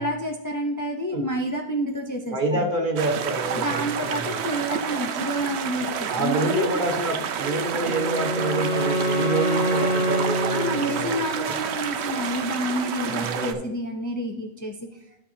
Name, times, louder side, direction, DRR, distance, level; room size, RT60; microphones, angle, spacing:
voice 1, 0.0-2.7 3.6-6.7 10.5-14.8, equal, 20° left, 2 dB, 0.6 m, -29 dB
voice 2, 2.3-4.4 6.1-11.6 13.1-13.6, right 2 dB, 50° right, 2 dB, 1.4 m, -27 dB
sound 1, 3.0-13.5, right 8 dB, 85° right, 0.9 m, -29 dB
Wind instrument woodwind instrument, 7.4-11.4, equal, 40° left, 1.0 m, -26 dB
12.5 x 6.0 x 2.8 m, 0.85 s
omnidirectional pair, 1.1 m